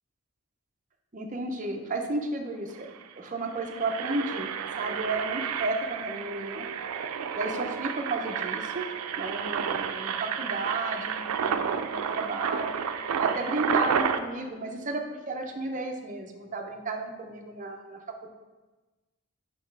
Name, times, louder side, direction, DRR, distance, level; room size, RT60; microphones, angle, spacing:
voice 1, 1.1-2.9 3.2-4.5 4.8-6.7 7.4-8.9 9.2-12.7 13.2-18.3, right 2 dB, 35° right, 3 dB, 0.6 m, -33 dB
Engine, 2.5-2.6 2.8-3.0 3.5-14.2, right 7 dB, 90° right, 0.4 m, -31 dB
5.8 x 5.1 x 3.3 m, 1.2 s
head